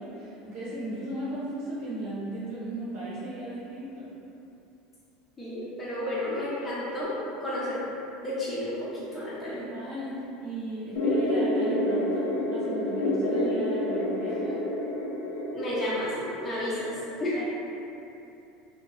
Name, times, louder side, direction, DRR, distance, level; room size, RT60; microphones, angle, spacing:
voice 1, 0.0-4.1 9.5-14.6 17.3-17.5, right 1 dB, 75° right, -9 dB, 1.2 m, -36 dB
voice 2, 5.4-7.1 7.4-7.8 8.2-9.6 15.5-16.1 16.4-17.4, left 1 dB, 10° left, -10 dB, 0.5 m, -32 dB
sound 1, 10.9-15.9, left 1 dB, 85° left, 0.4 m, -28 dB
2.7 x 2.5 x 2.9 m, 2.8 s
cardioid pair, 165°, 0 cm